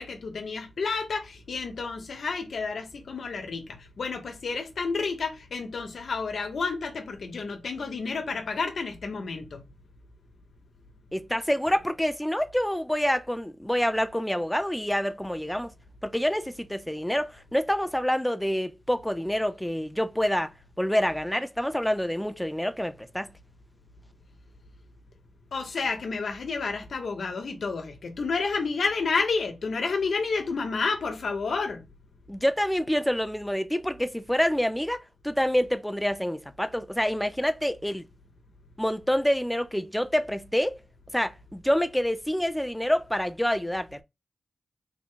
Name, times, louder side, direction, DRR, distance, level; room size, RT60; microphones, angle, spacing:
voice 1, 0.0-9.6 25.5-31.8, left 4 dB, 70° left, 1.0 m, -30 dB
voice 2, 11.1-15.7 16.0-20.5 20.8-23.3 32.3-38.0 38.8-40.8 41.1-44.0, equal, 5° left, 0.4 m, -27 dB
3.6 x 2.2 x 3.8 m
wide cardioid pair, 95°, 0 cm